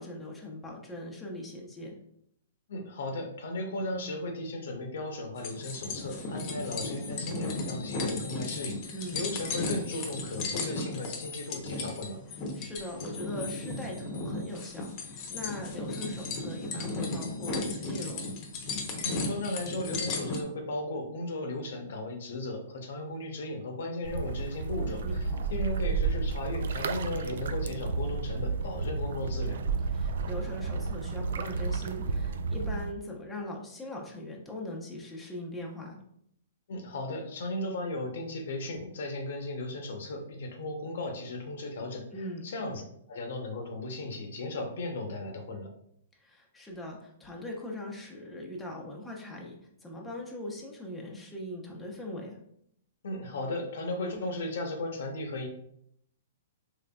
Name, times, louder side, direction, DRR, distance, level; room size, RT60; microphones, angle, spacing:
voice 1, 0.0-2.0 8.9-9.2 12.5-18.4 25.0-25.4 29.9-36.0 42.1-42.5 46.1-52.4, left 1 dB, 5° left, -2 dB, 0.7 m, -40 dB
voice 2, 2.7-12.2 19.0-25.2 25.5-29.6 36.7-42.0 42.4-42.8 43.1-45.7 53.0-55.5, left 2 dB, 70° left, 4 dB, 0.8 m, -36 dB
sound 1, 5.4-20.4, left 3 dB, 40° left, 0.8 m, -35 dB
sound 2, 24.0-32.9, right 4 dB, 70° right, 0.3 m, -32 dB
3.7 x 3.2 x 2.3 m, 0.71 s
hypercardioid pair, 135°, 0 cm